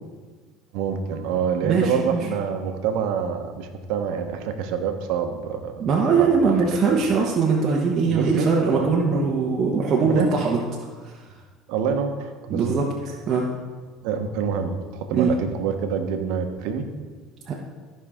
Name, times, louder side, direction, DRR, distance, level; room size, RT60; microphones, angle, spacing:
voice 1, 0.7-5.9 6.2-7.0 8.1-9.3 10.0-10.4 11.7-12.7 14.0-16.9, right 7 dB, 75° right, 6 dB, 1.1 m, -27 dB
voice 2, 1.6-2.2 5.8-10.6 12.5-12.8 13.3-13.5 15.1-15.3 17.5-17.6, right 5 dB, 40° right, -3 dB, 1.2 m, -21 dB
14.5 x 5.6 x 3.7 m, 1.5 s
supercardioid pair, 110°, 0 cm